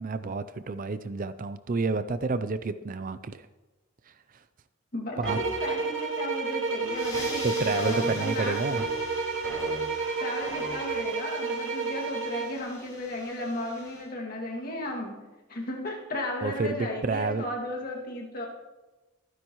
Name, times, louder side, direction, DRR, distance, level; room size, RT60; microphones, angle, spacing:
voice 1, 0.0-3.5 5.2-5.4 7.4-8.8 16.4-17.4, right 3 dB, 35° right, 12 dB, 0.4 m, -29 dB
voice 2, 4.9-8.8 10.2-18.5, left 1 dB, 40° left, 0 dB, 2.2 m, -35 dB
sound 1, 5.2-11.0, equal, ahead, 3.7 m, -41 dB
sound 2, 5.3-12.6, right 4 dB, 55° right, 1.2 m, -31 dB
sound 3, 6.6-14.0, left 1 dB, 15° left, 5.3 m, -45 dB
23.5 x 10.0 x 3.1 m, 1.1 s
head